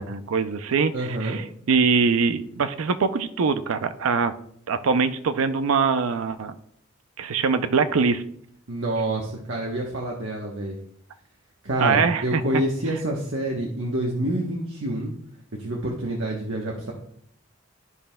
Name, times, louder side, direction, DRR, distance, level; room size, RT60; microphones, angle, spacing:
voice 1, 0.0-4.3 4.7-6.5 7.2-8.2 11.8-12.4, right 5 dB, 85° right, 11 dB, 0.5 m, -23 dB
voice 2, 0.9-1.4 8.7-10.8 11.6-15.1 15.6-16.9, right 1 dB, 65° right, -2 dB, 1.0 m, -27 dB
12.5 x 5.4 x 2.2 m, 0.66 s
head